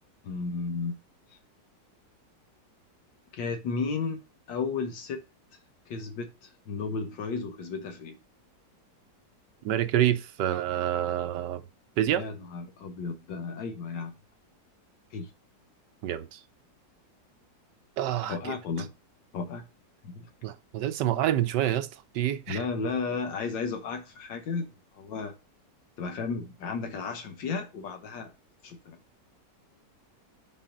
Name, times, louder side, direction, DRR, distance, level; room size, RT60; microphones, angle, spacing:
voice 1, 0.2-1.0 3.3-4.2 4.5-5.2 5.9-8.1 12.1-14.1 15.1-15.3 18.3-18.9 19.3-19.7 20.0-20.3 22.5-25.3 26.0-28.3 28.6-29.0, left 4 dB, 80° left, 1.7 m, -33 dB
voice 2, 9.6-11.6 12.0-12.3 16.0-16.4 18.0-18.5 20.4-21.9 22.1-22.6, right 12 dB, 75° right, 1.2 m, -27 dB
5.9 x 4.5 x 5.1 m
omnidirectional pair, 2.0 m